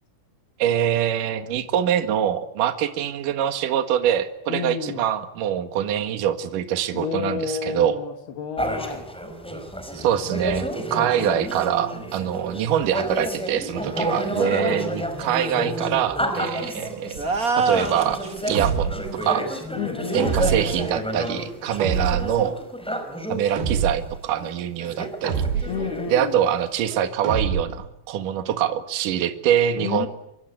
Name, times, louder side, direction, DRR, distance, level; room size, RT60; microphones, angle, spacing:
voice 1, 0.6-8.0 9.9-17.2 17.6-18.9 19.2-19.4 20.1-22.6 23.3-25.7 26.1-30.1, right 10 dB, 60° right, 9 dB, 3.1 m, -24 dB
voice 2, 4.5-5.0 6.9-9.1 14.4-15.1 19.8-20.4 25.7-26.4 29.8-30.1, left 7 dB, 80° left, 5 dB, 4.5 m, -31 dB
sound 1, 8.6-23.5 24.1-24.2 24.4-27.0, right 1 dB, ahead, 4.4 m, -30 dB
sound 2, 17.2-18.7, right 3 dB, 30° right, 2.1 m, -25 dB
sound 3, 18.5-19.1 20.2-20.9 21.8-22.4 23.6-24.2 25.2-25.9 27.2-27.9, right 6 dB, 85° right, 4.4 m, -26 dB
25.0 x 25.0 x 9.4 m, 0.79 s
omnidirectional pair, 4.5 m